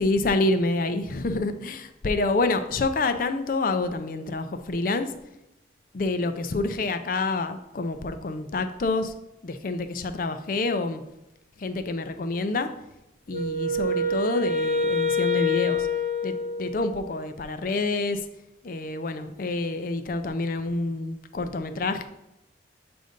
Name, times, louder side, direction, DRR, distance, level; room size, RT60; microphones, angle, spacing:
voice 1, 0.0-5.1 5.9-9.1 9.4-11.0 11.6-12.7 13.3-15.9 16.2-18.2 18.6-22.1, left 2 dB, 50° left, 9 dB, 0.4 m, -27 dB
Wind instrument woodwind instrument, 13.3-17.2, left 3 dB, 45° right, 0.6 m, -26 dB
7.6 x 2.6 x 5.1 m, 0.89 s
head